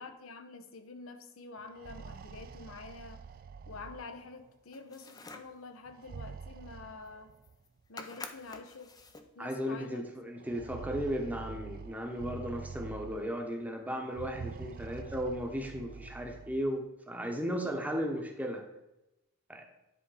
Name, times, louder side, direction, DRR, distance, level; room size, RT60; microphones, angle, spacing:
voice 1, 0.0-3.3 3.7-7.3 7.9-8.9 9.3-10.1, left 3 dB, 85° left, 8 dB, 0.8 m, -47 dB
sound 1, 1.6-4.5 5.9-7.6 8.6-8.7 9.0-9.1 10.4-13.5 14.1-16.7, right 5 dB, 45° right, 0.3 m, -46 dB
sound 2, 4.7-5.6 7.1-7.2 7.4-7.7 8.0-9.3, left 3 dB, 20° left, 0.5 m, -47 dB
voice 2, 9.4-18.6 19.5-19.7, equal, 10° right, 3 dB, 1.0 m, -35 dB
10.0 x 3.7 x 4.9 m, 0.92 s
head